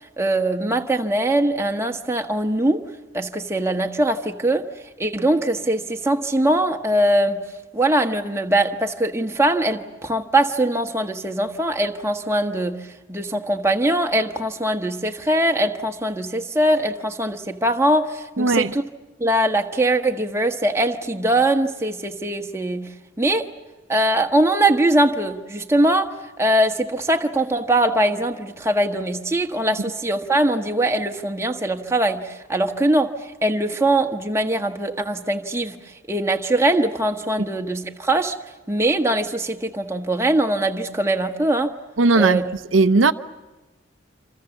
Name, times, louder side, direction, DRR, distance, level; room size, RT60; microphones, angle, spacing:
voice 1, 0.2-2.8 3.1-4.7 5.0-7.4 7.7-12.8 13.1-18.8 19.2-22.9 23.2-23.5 23.9-33.1 33.4-35.8 36.1-38.3 38.7-41.7 42.1-42.4, right 1 dB, 15° right, 1.3 m, -21 dB
voice 2, 18.4-18.7 42.0-42.4 42.7-43.1, right 3 dB, 80° right, 0.8 m, -17 dB
27.5 x 26.5 x 7.3 m
head